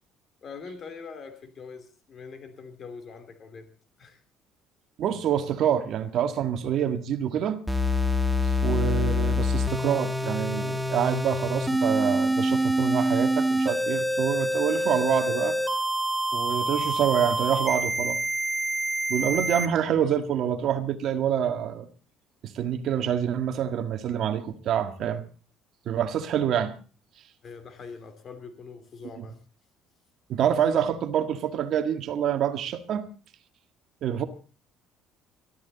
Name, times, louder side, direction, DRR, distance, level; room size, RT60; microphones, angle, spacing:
voice 1, 0.4-3.7 4.0-4.2 27.4-29.4, left 5 dB, 30° left, 2.8 m, -43 dB
voice 2, 5.0-7.6 8.4-15.6 16.3-18.2 19.1-21.9 22.4-25.2 25.8-26.8 29.2-29.3 30.3-33.1 34.0-34.3, right 9 dB, 45° right, 1.7 m, -26 dB
sound 1, 7.7-19.7, equal, ahead, 1.2 m, -26 dB
22.5 x 13.5 x 4.0 m
cardioid pair, 175°, 0 cm